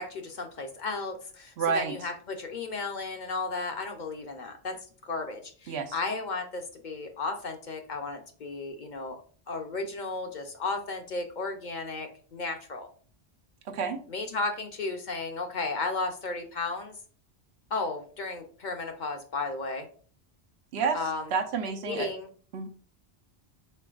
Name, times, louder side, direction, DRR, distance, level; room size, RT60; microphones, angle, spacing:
voice 1, 0.0-4.8 5.0-9.2 9.5-12.9 14.1-17.0 17.7-19.9 20.9-21.3 21.9-22.3, left 3 dB, 55° left, 4 dB, 0.7 m, -34 dB
voice 2, 1.6-2.0 5.7-5.9 13.7-14.0 20.7-21.0 21.3-22.1 22.5-22.7, right 5 dB, 85° right, 5 dB, 0.9 m, -29 dB
4.4 x 4.1 x 2.3 m, 0.43 s
omnidirectional pair, 1.1 m